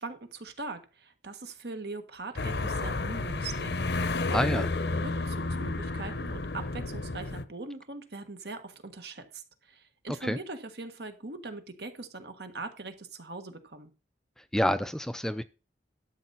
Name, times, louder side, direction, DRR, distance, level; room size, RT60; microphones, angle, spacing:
voice 1, 0.0-4.6 4.9-13.9, right 3 dB, 70° right, 1.6 m, -41 dB
sound 1, 2.4-7.4, left 3 dB, 70° left, 0.8 m, -31 dB
voice 2, 4.3-4.7 10.2-10.4 14.4-15.4, equal, 5° left, 0.4 m, -28 dB
12.0 x 6.8 x 4.2 m
head